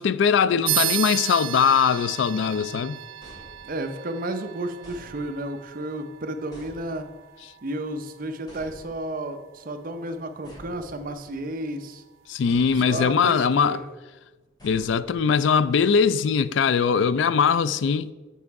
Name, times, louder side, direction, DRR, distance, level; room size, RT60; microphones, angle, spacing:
voice 1, 0.0-3.0 12.3-13.8 14.6-18.1, left 6 dB, 70° left, 0.3 m, -21 dB
sound 1, 0.7-10.6, right 14 dB, 90° right, 0.5 m, -35 dB
sound 2, 3.2-4.1 4.8-5.7 6.5-7.4 8.5-9.3 10.4-11.5 12.5-13.2 14.6-15.5, equal, 20° left, 2.1 m, -48 dB
voice 2, 3.6-7.1 7.6-12.0 12.8-13.8, right 1 dB, 45° right, 0.6 m, -32 dB
7.4 x 5.5 x 4.7 m
head